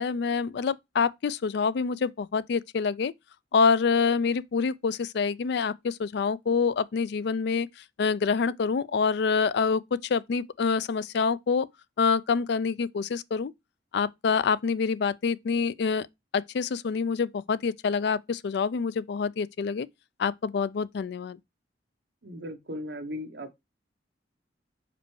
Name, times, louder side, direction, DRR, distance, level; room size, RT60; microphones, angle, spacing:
voice 1, 0.0-3.1 3.5-7.7 8.0-11.7 12.0-13.5 13.9-16.1 16.3-19.9 20.2-21.4, left 5 dB, 65° left, 0.4 m, -26 dB
voice 2, 22.2-23.6, equal, 70° right, 1.2 m, -37 dB
5.0 x 4.4 x 4.6 m
head